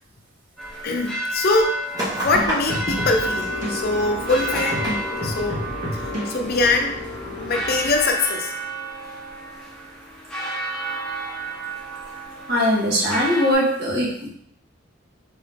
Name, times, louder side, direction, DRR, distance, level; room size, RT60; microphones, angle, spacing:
sound 1, 0.6-13.5, right 1 dB, 5° left, 1.1 m, -32 dB
voice 1, 0.8-4.9 5.2-5.6 5.9-7.0 7.4-8.5 12.0-12.1, left 3 dB, 50° left, 4 dB, 0.6 m, -23 dB
sound 2, 1.9-7.7, equal, 20° right, 1.1 m, -30 dB
sound 3, 2.2-7.9, equal, 40° right, 1.5 m, -32 dB
voice 2, 12.5-14.3, equal, 55° right, -5 dB, 1.6 m, -20 dB
3.8 x 3.7 x 3.4 m, 0.69 s
head